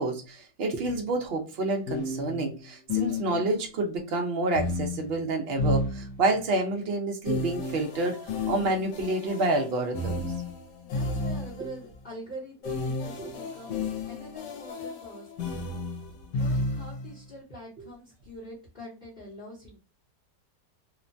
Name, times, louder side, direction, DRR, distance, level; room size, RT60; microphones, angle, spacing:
voice 1, 0.0-8.2 8.5-10.2 13.2-13.3, right 2 dB, 70° right, 0.5 m, -28 dB
sound 1, 0.8-1.0 1.9-3.7 4.5-6.5 7.2-11.8 12.6-17.1, left 2 dB, 80° left, 1.3 m, -32 dB
voice 2, 10.8-15.6 16.3-19.8, equal, 40° left, 0.9 m, -44 dB
3.0 x 2.1 x 2.5 m
omnidirectional pair, 1.9 m